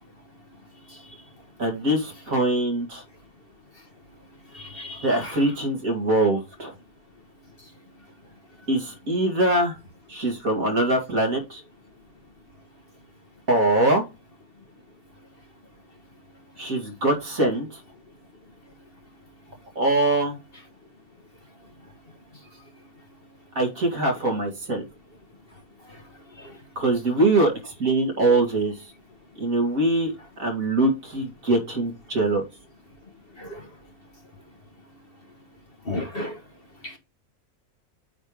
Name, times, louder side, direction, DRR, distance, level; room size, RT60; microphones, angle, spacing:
voice 1, 1.6-3.0 5.0-6.7 8.7-9.8 10.1-11.6 13.5-14.0 16.6-17.8 19.8-20.4 23.6-24.8 26.8-28.7 29.4-30.1 30.4-32.4, right 2 dB, 60° right, 2.9 m, -23 dB
voice 2, 4.7-5.3 33.4-33.6 35.9-36.3, left 1 dB, 40° left, 1.4 m, -32 dB
8.9 x 3.5 x 4.9 m
omnidirectional pair, 1.6 m